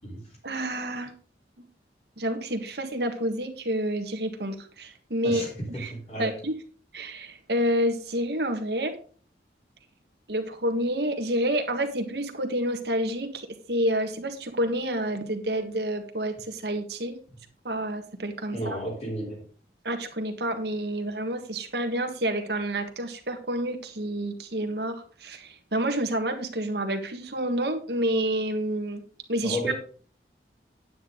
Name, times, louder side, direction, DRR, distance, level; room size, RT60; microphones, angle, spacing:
voice 1, 0.4-1.1 2.2-5.4 5.7-5.9 6.2-6.5 6.9-8.9 10.3-17.2 17.6-18.6 19.8-29.0 29.3-29.7, right 1 dB, 75° right, 1.6 m, -29 dB
voice 2, 5.2-6.4 18.5-19.4 29.4-29.7, equal, 35° left, 4.0 m, -33 dB
9.6 x 8.9 x 3.9 m
head